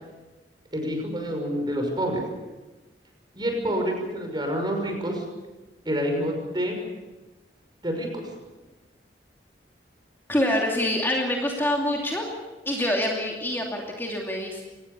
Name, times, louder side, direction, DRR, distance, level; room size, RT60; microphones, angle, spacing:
voice 1, 0.7-2.4 3.3-5.3 5.8-6.8 7.8-8.3, equal, 25° right, 3 dB, 6.0 m, -28 dB
voice 2, 10.3-12.3 12.7-14.6, left 1 dB, 15° left, -1 dB, 2.6 m, -26 dB
25.0 x 19.0 x 7.0 m, 1.2 s
head